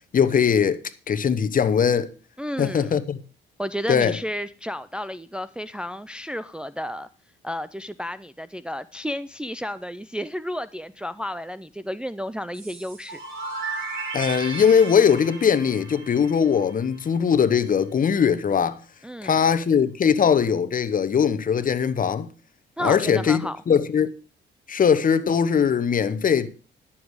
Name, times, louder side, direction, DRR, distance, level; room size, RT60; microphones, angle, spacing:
voice 1, 0.1-0.8 1.1-2.1 2.6-3.2 3.9-4.2 14.1-18.8 19.2-22.3 22.8-24.1 24.7-26.5, left 7 dB, 45° left, 1.0 m, -20 dB
voice 2, 2.4-3.0 3.6-7.1 7.4-13.2 19.0-19.4 22.8-23.6, equal, 5° right, 0.4 m, -32 dB
sound 1, 12.5-17.3, right 3 dB, 75° right, 4.1 m, -35 dB
11.0 x 7.2 x 4.8 m
cardioid pair, 90°, 20 cm